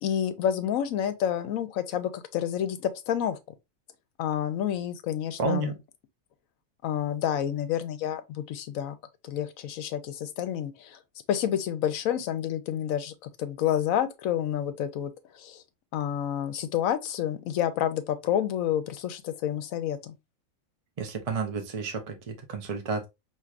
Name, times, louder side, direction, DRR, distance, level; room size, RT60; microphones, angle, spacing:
voice 1, 0.0-3.4 4.2-5.7 6.8-9.0 9.2-11.0 11.3-13.1 13.4-15.6 15.9-20.1, left 10 dB, 80° left, 1.0 m, -29 dB
voice 2, 5.4-5.8 21.0-23.1, right 4 dB, 35° right, 0.6 m, -31 dB
4.5 x 2.9 x 2.4 m
omnidirectional pair, 1.4 m